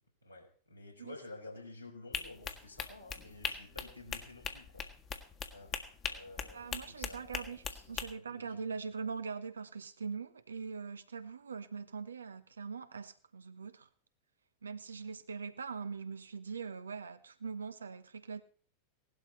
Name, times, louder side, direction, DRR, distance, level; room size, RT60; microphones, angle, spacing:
voice 1, 0.2-4.9 5.5-9.1, left 2 dB, 85° left, 4.9 m, -52 dB
sound 1, 2.1-8.1, left 7 dB, 30° left, 1.6 m, -40 dB
voice 2, 6.5-13.9 14.6-18.4, right 5 dB, 70° right, 1.1 m, -42 dB
17.5 x 12.0 x 4.2 m
figure-of-eight pair, 90°, 0 cm